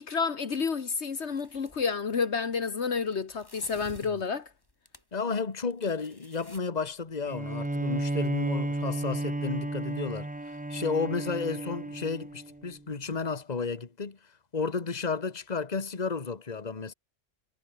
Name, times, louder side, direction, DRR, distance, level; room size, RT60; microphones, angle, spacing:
voice 1, 0.0-4.5, left 5 dB, 65° left, 1.7 m, -30 dB
sound 1, 1.2-1.9 3.0-5.2 5.5-6.6, left 1 dB, 20° left, 5.4 m, -52 dB
voice 2, 5.1-10.3 10.7-14.2 14.5-16.9, left 4 dB, 35° left, 1.7 m, -32 dB
Bowed string instrument, 7.3-12.7, right 1 dB, 10° right, 0.5 m, -33 dB
omnidirectional pair, 1.2 m